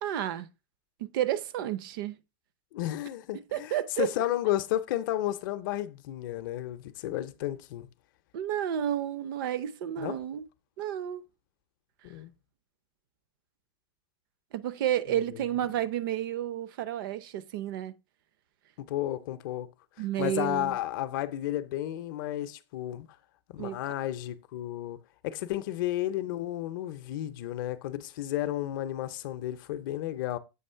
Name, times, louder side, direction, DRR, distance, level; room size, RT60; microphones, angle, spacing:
voice 1, 0.0-0.5 1.0-2.2 3.5-4.1 8.3-10.4 10.8-11.2 14.5-17.9 20.0-20.8 23.6-23.8, right 11 dB, 50° right, 0.5 m, -31 dB
voice 2, 2.7-7.9 10.0-10.2 12.0-12.3 15.3-15.4 18.8-19.7 20.2-23.1 23.5-25.0 25.2-30.4, left 13 dB, 50° left, 0.5 m, -32 dB
7.7 x 3.1 x 5.4 m
supercardioid pair, 175°, 14 cm